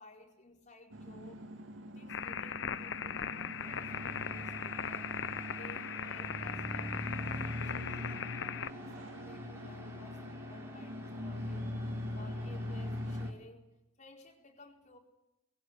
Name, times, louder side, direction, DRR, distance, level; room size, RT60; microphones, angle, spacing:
voice 1, 0.0-1.5 1.9-5.1 5.5-11.7 12.1-15.0, left 2 dB, 40° left, 2 dB, 4.4 m, -56 dB
sound 1, 0.9-13.3, left 1 dB, 70° right, 2.9 m, -41 dB
sound 2, 2.1-8.7, left 8 dB, 65° left, 0.8 m, -39 dB
sound 3, 3.6-13.3, right 1 dB, 15° right, 4.6 m, -54 dB
21.0 x 18.5 x 8.7 m, 0.91 s
head